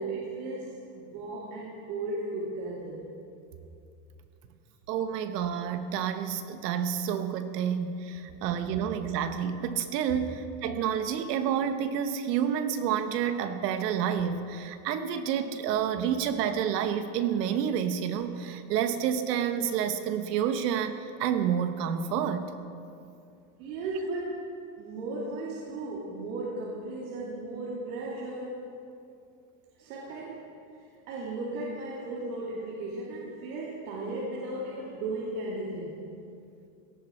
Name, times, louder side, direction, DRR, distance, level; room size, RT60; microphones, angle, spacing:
voice 1, 0.0-3.0 8.3-8.4 10.1-10.3 23.6-24.5 24.8-28.6 29.8-30.5 31.1-36.0, right 2 dB, 65° right, -5 dB, 2.6 m, -36 dB
voice 2, 4.9-20.9 21.2-22.5, right 8 dB, 85° right, 9 dB, 1.2 m, -29 dB
17.0 x 14.0 x 4.4 m, 2.5 s
supercardioid pair, 165°, 47 cm